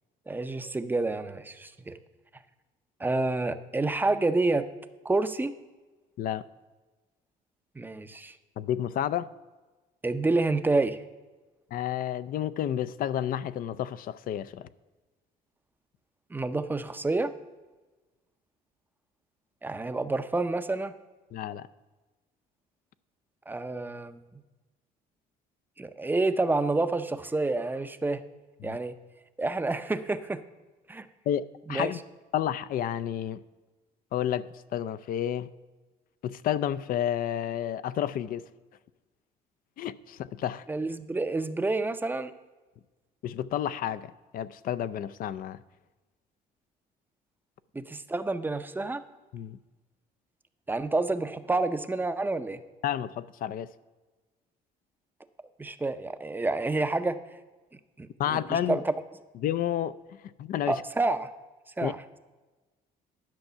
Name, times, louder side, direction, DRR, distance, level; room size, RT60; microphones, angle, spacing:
voice 1, 0.3-2.0 3.0-4.7 5.0-5.5 7.8-8.3 10.0-11.0 16.3-17.3 19.6-20.9 23.5-24.2 25.8-28.2 28.6-28.9 29.4-30.4 30.9-31.1 31.7-31.9 40.7-42.3 47.7-49.0 50.7-52.6 55.6-57.2 58.0-58.9 60.7-61.3 61.8-62.0, right 2 dB, 10° right, 10 dB, 0.5 m, -28 dB
voice 2, 8.6-9.3 11.7-14.7 21.3-21.7 28.6-28.8 31.3-32.0 32.3-33.4 34.1-35.5 36.2-38.4 39.8-40.6 43.2-45.6 49.3-49.6 52.8-53.7 58.2-58.8 59.4-59.9 60.4-60.8 61.8-61.9, left 10 dB, 60° left, 16 dB, 0.4 m, -30 dB
10.5 x 5.9 x 5.5 m, 1.2 s
cardioid pair, 110°, 17 cm